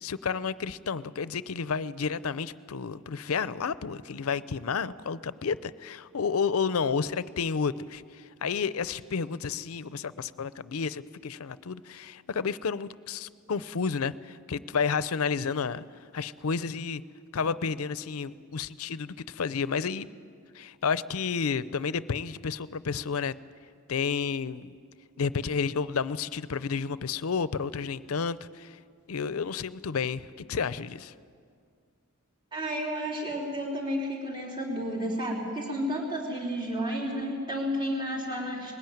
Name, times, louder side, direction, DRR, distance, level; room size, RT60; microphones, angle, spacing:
voice 1, 0.0-15.8 16.1-17.0 17.3-20.1 20.5-23.3 23.9-24.8 25.2-28.8 29.1-31.1, left 5 dB, 80° left, 16 dB, 0.6 m, -31 dB
voice 2, 32.5-38.7, equal, 25° right, -3 dB, 3.3 m, -31 dB
20.5 x 16.5 x 9.2 m, 2.2 s
head